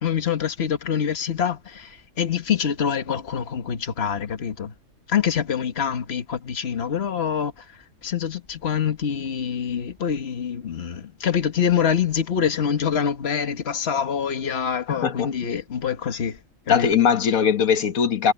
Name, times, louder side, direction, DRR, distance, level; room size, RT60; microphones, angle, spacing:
voice 1, 0.0-4.7 5.1-7.5 8.0-16.4 16.7-16.9, left 8 dB, 50° left, 1.6 m, -25 dB
voice 2, 14.9-15.3 16.7-18.3, left 7 dB, 90° left, 1.6 m, -20 dB
omnidirectional pair, 1.4 m